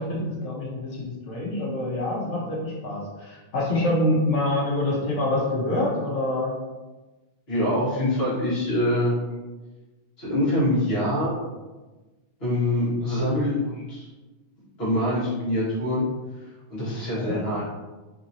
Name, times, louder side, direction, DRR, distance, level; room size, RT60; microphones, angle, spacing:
voice 1, 0.0-6.5 17.1-17.5, left 1 dB, 80° left, -4 dB, 1.3 m, -26 dB
voice 2, 7.5-9.4 10.2-11.3 12.4-14.1 14.8-16.0 16.7-17.6, left 1 dB, 60° left, -11 dB, 1.7 m, -24 dB
3.6 x 2.9 x 2.7 m, 1.2 s
omnidirectional pair, 1.2 m